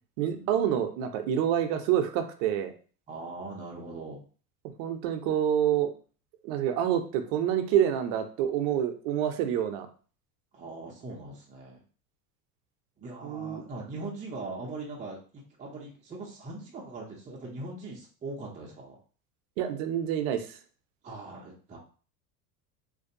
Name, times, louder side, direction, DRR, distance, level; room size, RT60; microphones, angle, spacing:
voice 1, 0.2-2.7 4.8-5.9 6.4-9.9 13.2-13.6 19.6-20.6, right 10 dB, 60° right, 7 dB, 0.6 m, -27 dB
voice 2, 3.1-4.2 10.5-11.8 13.0-15.2 15.6-19.0 21.0-21.8, right 2 dB, 15° right, -2 dB, 0.5 m, -40 dB
2.5 x 2.2 x 2.6 m, 0.39 s
supercardioid pair, 105°, 46 cm